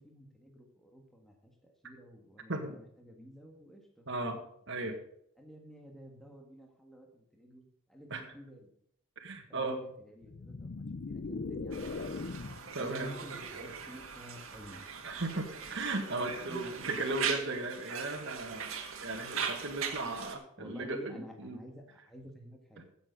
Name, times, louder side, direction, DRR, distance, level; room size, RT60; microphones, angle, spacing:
voice 1, 0.0-4.1 5.4-7.6 7.9-8.7 9.5-12.2 12.8-14.8 16.4-16.8 20.6-22.9, equal, ahead, 2 dB, 1.6 m, -52 dB
voice 2, 4.1-4.4 4.7-5.0 8.1-8.2 9.2-9.8 12.7-13.1 15.0-18.7 19.0-21.6, right 2 dB, 60° right, 3 dB, 1.7 m, -36 dB
sound 1, 10.2-12.7, left 3 dB, 50° left, 0.5 m, -39 dB
Conversation, 11.7-20.4, right 6 dB, 75° right, 1.7 m, -40 dB
15.0 x 7.2 x 5.1 m, 0.71 s
head